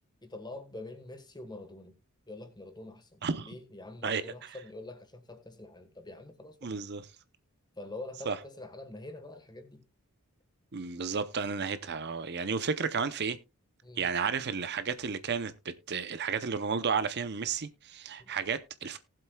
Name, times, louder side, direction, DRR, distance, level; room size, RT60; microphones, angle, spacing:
voice 1, 0.2-2.0 2.3-6.7 7.8-9.8 13.8-14.1 18.2-18.3, left 2 dB, 20° left, 1.4 m, -45 dB
voice 2, 3.2-3.5 4.0-4.5 6.6-7.0 8.3-8.4 10.7-13.4 14.0-19.0, right 5 dB, 50° right, 0.7 m, -32 dB
19.0 x 7.7 x 2.3 m
head